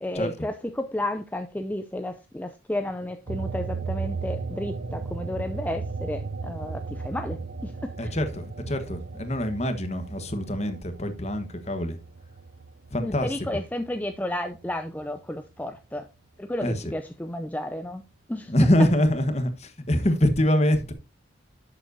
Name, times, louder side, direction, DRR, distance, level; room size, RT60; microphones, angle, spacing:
voice 1, 0.0-8.1 13.0-16.1 16.4-18.0 18.3-18.5, left 1 dB, 10° left, 0.4 m, -32 dB
sound 1, 3.3-14.2 14.6-16.0, right 4 dB, 65° right, 0.8 m, -36 dB
voice 2, 8.0-12.0 12.9-13.5 16.6-16.8 18.5-20.9, left 1 dB, 30° left, 1.3 m, -24 dB
11.0 x 7.6 x 2.7 m
head